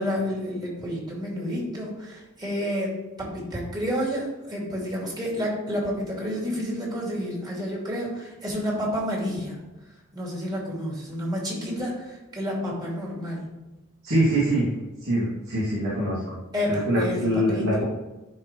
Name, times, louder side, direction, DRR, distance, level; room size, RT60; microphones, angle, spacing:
voice 1, 0.0-9.6 10.1-13.5 16.5-17.7, equal, 20° right, -4 dB, 2.6 m, -30 dB
voice 2, 14.0-14.7 15.0-16.2 16.7-17.8, right 1 dB, 65° right, -9 dB, 2.5 m, -23 dB
11.5 x 4.7 x 3.2 m, 1.1 s
head